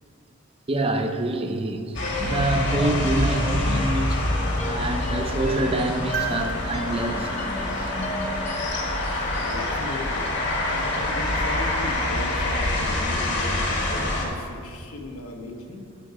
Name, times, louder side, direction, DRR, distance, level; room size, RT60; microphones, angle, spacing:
voice 1, 0.7-1.9 2.2-4.2 4.7-7.9, right 2 dB, 25° right, 0.6 m, -26 dB
sound 1, 1.9-14.3, left 1 dB, 55° left, 1.8 m, -26 dB
sound 2, 2.0-8.9, left 1 dB, 30° left, 0.8 m, -35 dB
sound 3, 6.1-8.5 10.5-10.6, right 5 dB, 65° right, 1.0 m, -36 dB
voice 2, 9.1-10.2 10.7-15.8, left 1 dB, 85° left, 1.4 m, -37 dB
10.0 x 8.3 x 4.8 m
head